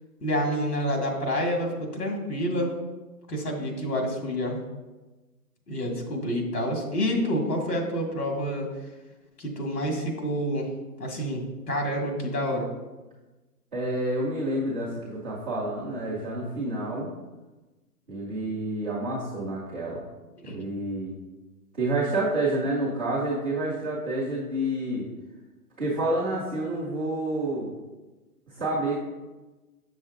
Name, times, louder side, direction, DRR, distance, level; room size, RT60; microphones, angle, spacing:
voice 1, 0.2-2.7 3.3-4.6 5.7-8.7 9.4-10.7 11.0-12.7 20.4-20.7, equal, 85° left, 1 dB, 2.0 m, -28 dB
voice 2, 13.7-17.1 18.1-20.0 20.4-21.1 21.7-25.1 25.8-27.7 28.5-29.0, right 1 dB, 10° right, -11 dB, 0.5 m, -29 dB
7.3 x 6.2 x 2.5 m, 1.1 s
hypercardioid pair, 140°, 47 cm